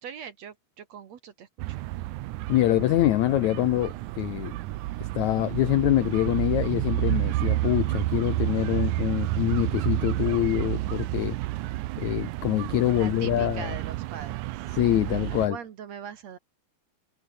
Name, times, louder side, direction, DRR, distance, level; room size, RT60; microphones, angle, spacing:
voice 1, 0.0-1.9 12.9-14.7 15.5-16.4, right 8 dB, 55° right, 2.1 m, -41 dB
sound 1, 1.6-15.5, right 17 dB, 80° right, 1.7 m, -30 dB
voice 2, 2.5-4.6 5.0-11.4 12.0-13.7 14.7-15.6, left 15 dB, 85° left, 1.7 m, -25 dB
omnidirectional pair, 4.4 m